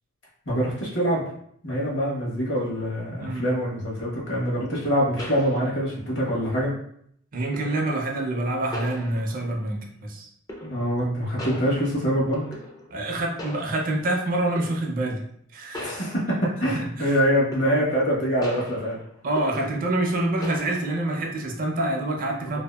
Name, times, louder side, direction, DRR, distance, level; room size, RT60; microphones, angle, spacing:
voice 1, 0.5-1.2 1.6-6.7 10.6-12.5 15.8-19.0 22.5-22.6, equal, 60° left, -4 dB, 1.0 m, -25 dB
sound 1, 4.6-4.7 5.2-6.1 7.5-8.0 8.7-9.6 10.5-11.1 11.4-13.1 13.4-14.1 14.6-15.0 15.7-16.7 17.5-18.1 18.4-20.1 20.4-21.1, left 1 dB, 20° left, 0.4 m, -39 dB
voice 2, 7.3-10.3 12.9-15.2 15.5-16.0 16.7-17.2 19.2-22.6, right 2 dB, 45° right, 1 dB, 0.4 m, -26 dB
2.7 x 2.4 x 2.2 m, 0.67 s
head